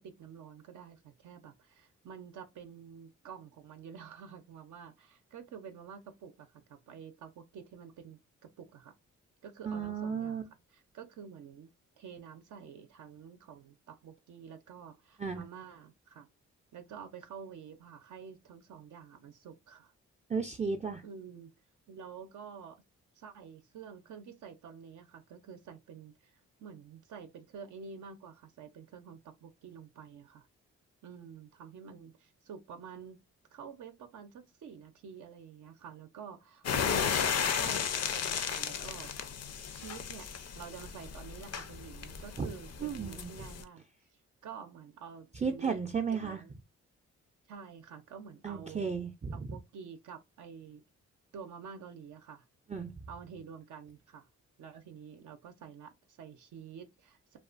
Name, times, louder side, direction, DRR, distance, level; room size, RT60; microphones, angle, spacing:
voice 1, 0.0-8.9 9.4-11.7 12.0-16.3 16.7-19.9 21.0-21.5 21.9-22.8 23.1-30.5 31.0-33.2 33.5-39.1 39.7-43.8 44.4-45.8 46.2-46.5 47.5-48.9 49.3-50.8 51.3-52.4 53.1-54.3 54.6-57.4, right 7 dB, 75° right, 0.5 m, -49 dB
voice 2, 9.6-10.4 15.2-15.4 20.3-21.0 42.4-42.5 42.8-43.3 45.4-46.4 48.4-49.6 52.7-52.9, right 5 dB, 25° right, 0.4 m, -34 dB
sound 1, 36.6-43.6, left 7 dB, 55° left, 0.5 m, -34 dB
2.4 x 2.3 x 2.4 m
cardioid pair, 55°, 31 cm